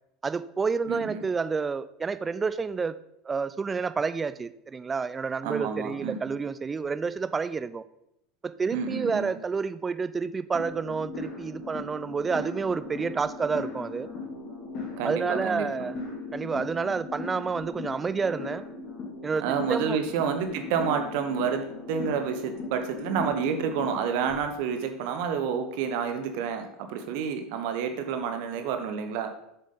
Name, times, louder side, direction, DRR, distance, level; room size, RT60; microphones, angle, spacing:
voice 1, 0.2-2.9 3.3-7.8 8.4-14.1 15.0-16.0 16.3-18.6 19.2-19.4 19.7-20.0, right 5 dB, 20° right, 14 dB, 0.4 m, -29 dB
voice 2, 0.9-1.2 5.4-6.4 8.7-9.4 15.0-15.9 19.4-29.3, right 7 dB, 55° right, 7 dB, 0.8 m, -29 dB
sound 1, 10.5-24.3, left 3 dB, 45° left, 2.4 m, -38 dB
7.3 x 6.8 x 3.9 m, 0.81 s
figure-of-eight pair, 75°, 0 cm